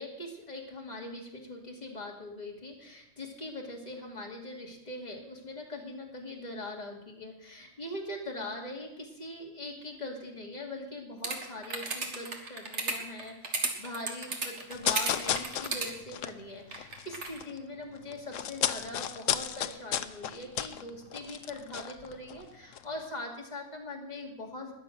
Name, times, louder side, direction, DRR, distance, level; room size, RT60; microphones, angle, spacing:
voice 1, 0.0-24.7, left 2 dB, 30° left, 0 dB, 2.5 m, -41 dB
sound 1, 11.2-15.9 16.7-17.4, right 3 dB, 60° right, 2.0 m, -33 dB
sound 2, 14.7-17.6 17.8-22.4 22.7-22.8, left 10 dB, 75° left, 1.0 m, -33 dB
20.5 x 7.2 x 6.2 m, 0.84 s
omnidirectional pair, 1.4 m